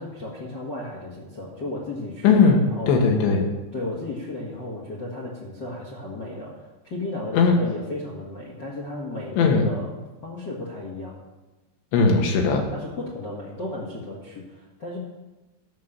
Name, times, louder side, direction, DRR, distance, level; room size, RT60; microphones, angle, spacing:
voice 1, 0.0-2.9 3.7-9.9 10.2-11.1 12.7-15.0, left 2 dB, 50° left, -4 dB, 1.2 m, -34 dB
voice 2, 2.2-3.5 7.3-7.6 9.4-9.7 11.9-12.6, left 4 dB, 75° left, 3 dB, 3.8 m, -18 dB
12.5 x 6.6 x 7.3 m, 1.1 s
omnidirectional pair, 5.2 m